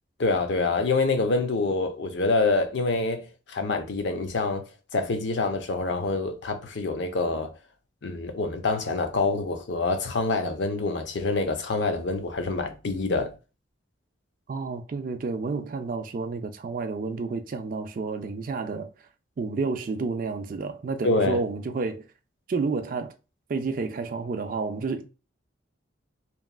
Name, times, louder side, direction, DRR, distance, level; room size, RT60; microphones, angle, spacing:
voice 1, 0.2-4.7 4.9-7.5 8.0-13.3 21.0-21.4, left 3 dB, 65° left, 0.5 m, -26 dB
voice 2, 14.5-18.9 19.4-22.0 22.5-23.1 23.5-25.1, right 4 dB, 45° right, 0.3 m, -30 dB
2.9 x 2.3 x 2.3 m
head